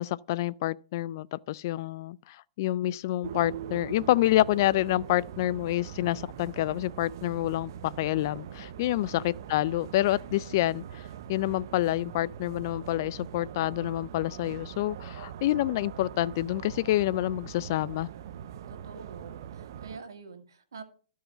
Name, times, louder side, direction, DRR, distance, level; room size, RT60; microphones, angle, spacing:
voice 1, 0.0-11.0 11.3-18.1, left 15 dB, 55° left, 0.3 m, -28 dB
sound 1, 3.2-20.0, right 9 dB, 60° right, 0.6 m, -42 dB
voice 2, 18.7-20.8, right 5 dB, 80° right, 1.7 m, -46 dB
13.0 x 4.7 x 5.5 m
hypercardioid pair, 125°, 2 cm